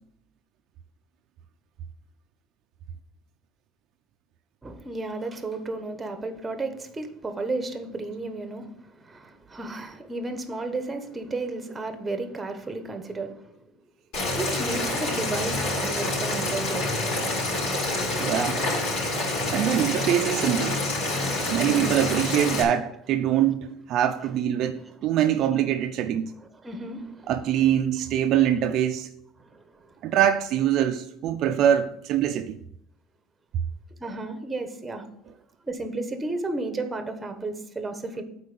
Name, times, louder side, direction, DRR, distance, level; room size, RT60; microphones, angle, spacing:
voice 1, 4.6-13.4 14.4-16.9 21.5-22.0 23.3-23.5 24.0-24.9 25.2-25.3 26.3-27.7 28.0-28.1 28.4-28.5 29.4-29.9 34.0-35.1 35.6-38.2, right 2 dB, 15° right, 1.1 m, -33 dB
Boiling, 14.1-22.6, left 2 dB, 60° left, 4.2 m, -27 dB
voice 2, 18.2-18.6 19.5-26.3 27.3-29.1 30.0-32.6, right 10 dB, 50° right, 0.5 m, -24 dB
8.3 x 4.7 x 6.8 m
cardioid pair, 140°, 0 cm